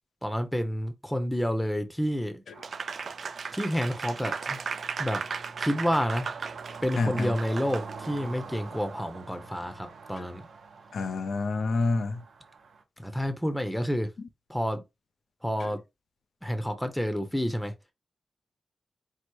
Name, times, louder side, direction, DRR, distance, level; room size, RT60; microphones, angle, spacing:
voice 1, 0.2-2.4 3.5-4.6 5.0-5.2 5.6-6.3 6.8-10.5 13.0-14.1 14.5-14.8 15.4-15.8 16.4-17.7, equal, 5° left, 0.7 m, -29 dB
sound 1, 2.5-12.8, right 4 dB, 90° right, 0.8 m, -45 dB
Applause, 2.6-8.2, right 5 dB, 65° right, 0.3 m, -36 dB
voice 2, 7.0-7.4 10.2-10.3 10.9-12.2 15.6-15.7, left 3 dB, 80° left, 0.5 m, -28 dB
4.6 x 2.0 x 4.5 m
wide cardioid pair, 110°, 0 cm